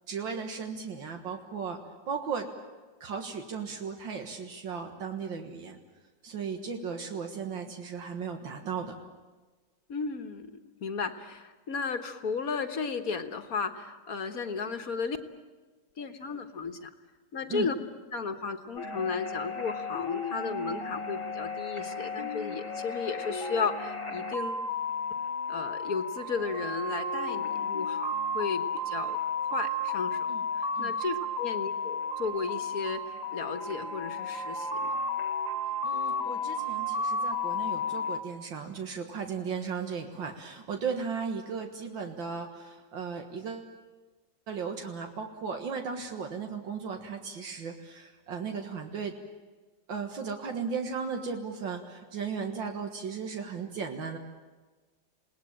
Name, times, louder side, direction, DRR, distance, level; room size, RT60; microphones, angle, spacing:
voice 1, 0.1-1.8 2.1-2.5 3.0-5.8 6.2-9.0 17.5-17.7 30.3-30.4 30.8-31.0 35.8-43.7 44.5-49.2 49.9-54.2, right 5 dB, 80° right, 4 dB, 2.3 m, -36 dB
voice 2, 9.9-15.2 16.0-16.9 17.3-17.7 18.1-24.6 25.5-29.2 29.5-30.3 30.5-35.0, left 5 dB, 50° left, 8 dB, 1.7 m, -34 dB
sound 1, 18.8-38.2, left 2 dB, 20° left, 1.4 m, -33 dB
28.5 x 19.0 x 8.9 m, 1.3 s
omnidirectional pair, 2.0 m